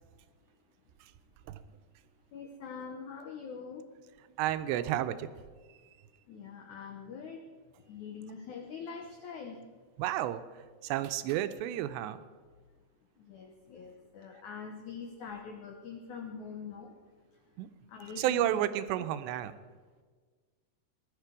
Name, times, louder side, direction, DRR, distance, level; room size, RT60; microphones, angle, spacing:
voice 1, 2.3-3.9 6.3-7.4 7.9-9.6 13.3-16.9 17.9-18.5, left 6 dB, 90° left, 4 dB, 1.6 m, -43 dB
voice 2, 4.4-5.3 10.0-10.4 10.8-12.2 17.6-17.7 18.2-19.5, right 12 dB, 85° right, 11 dB, 2.8 m, -31 dB
18.5 x 11.5 x 4.8 m, 1.5 s
omnidirectional pair, 5.0 m